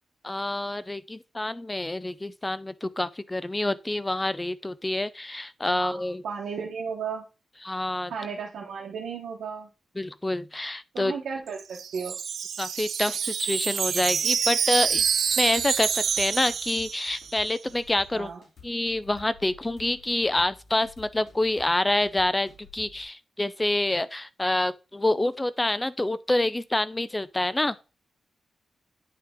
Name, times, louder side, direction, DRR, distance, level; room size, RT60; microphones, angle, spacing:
voice 1, 0.2-6.2 7.6-8.1 10.0-11.2 12.6-15.0 15.4-18.3 18.6-27.8, left 1 dB, 15° left, 0.4 m, -27 dB
voice 2, 5.7-7.2 8.1-9.7 10.9-12.1 18.1-18.4, right 6 dB, 90° right, 1.1 m, -34 dB
Wind chime, 11.5-17.5, right 7 dB, 70° right, 0.4 m, -27 dB
sound 1, 14.8-23.0, left 5 dB, 65° left, 2.9 m, -51 dB
8.9 x 4.7 x 3.6 m
wide cardioid pair, 115°, 0 cm